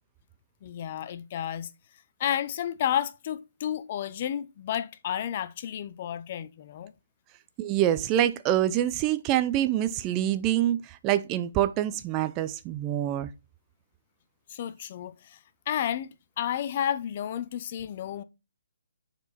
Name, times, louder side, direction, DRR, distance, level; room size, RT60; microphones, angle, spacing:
voice 1, 0.6-1.7 2.2-6.9 14.5-15.4 15.7-18.2, left 10 dB, 40° left, 0.6 m, -31 dB
voice 2, 7.6-13.3, right 12 dB, 20° right, 0.5 m, -26 dB
6.9 x 4.4 x 4.2 m
figure-of-eight pair, 145°, 0 cm